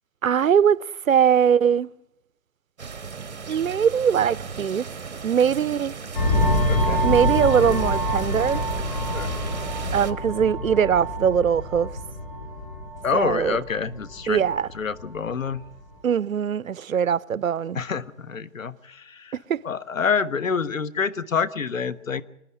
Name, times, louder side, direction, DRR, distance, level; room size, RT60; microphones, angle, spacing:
voice 1, 0.2-1.9 3.5-4.9 5.2-5.9 7.0-8.6 9.9-11.9 13.1-13.6 14.3-14.7 16.0-17.8 19.3-19.6, right 8 dB, 75° right, 0.8 m, -21 dB
sound 1, 2.8-10.1, right 5 dB, 55° right, 1.9 m, -36 dB
sound 2, 6.1-15.2 15.5-15.8, equal, 40° left, 6.3 m, -26 dB
voice 2, 6.6-7.1 9.1-9.3 9.8-9.9 13.0-14.4 14.7-15.6 17.7-19.3 19.6-22.2, left 6 dB, 70° left, 1.4 m, -27 dB
26.0 x 11.0 x 9.6 m
hypercardioid pair, 175°, 41 cm